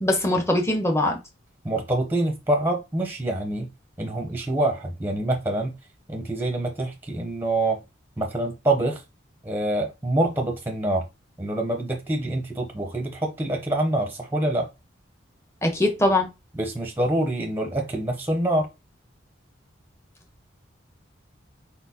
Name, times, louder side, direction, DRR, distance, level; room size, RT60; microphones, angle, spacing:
voice 1, 0.0-1.2 15.6-16.3, left 1 dB, 15° left, 0.9 m, -21 dB
voice 2, 1.6-3.7 4.0-5.7 6.1-7.8 8.2-9.0 9.4-11.1 11.4-14.7 16.5-18.7, right 1 dB, 10° right, 0.7 m, -26 dB
4.3 x 4.2 x 2.8 m
head